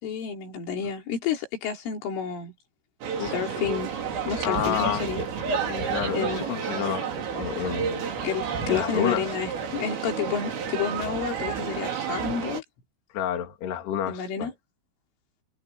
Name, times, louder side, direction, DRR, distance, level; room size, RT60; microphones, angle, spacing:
voice 1, 0.0-2.5 3.2-3.9 4.2-5.3 6.1-6.5 8.2-12.6 14.1-14.5, left 7 dB, 75° left, 6.0 m, -30 dB
sound 1, 3.0-12.6, right 6 dB, 80° right, 6.9 m, -31 dB
voice 2, 4.4-5.1 5.7-7.1 7.3-8.1 8.7-9.3 13.1-14.5, left 10 dB, 60° left, 4.2 m, -29 dB
omnidirectional pair, 5.8 m